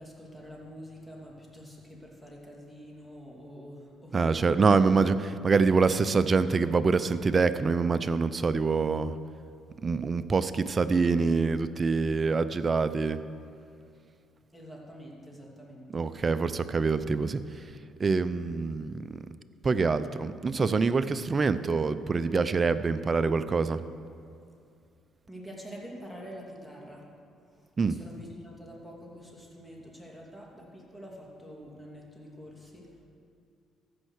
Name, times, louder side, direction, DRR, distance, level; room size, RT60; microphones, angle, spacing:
voice 1, 0.0-4.6 14.5-16.0 25.3-27.1 27.5-33.0, equal, 5° left, -2 dB, 2.7 m, -46 dB
voice 2, 4.1-9.2 9.8-13.2 15.9-17.7 18.0-19.2 19.6-23.8 27.8-27.9, right 4 dB, 35° right, 13 dB, 0.5 m, -25 dB
15.0 x 5.5 x 6.4 m, 2.4 s
supercardioid pair, 70°, 0 cm